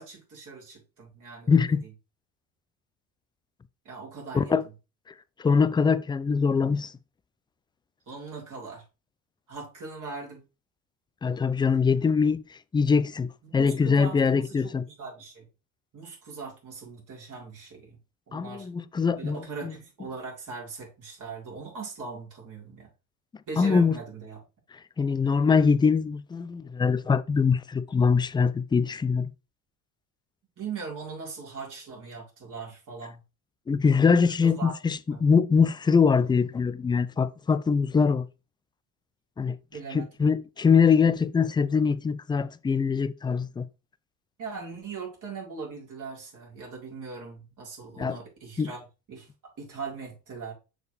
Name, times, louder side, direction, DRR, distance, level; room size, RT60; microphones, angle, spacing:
voice 1, 0.0-1.6 3.8-4.6 8.1-8.8 9.5-10.4 13.5-15.5 15.9-18.0 18.3-18.7 19.2-22.9 23.5-24.4 30.6-33.2 34.4-34.7 35.1-35.2 39.7-40.1 44.4-48.8 49.1-49.3 49.6-50.5, right 4 dB, 45° right, 4.0 m, -40 dB
voice 2, 1.5-1.8 4.3-4.6 5.4-6.9 11.2-14.8 18.3-19.7 23.6-23.9 25.0-29.3 33.7-38.2 39.4-39.6 39.9-43.7 48.0-48.2 48.6-48.7, left 5 dB, 10° left, 0.4 m, -23 dB
6.4 x 5.1 x 3.2 m
hypercardioid pair, 75°, 44 cm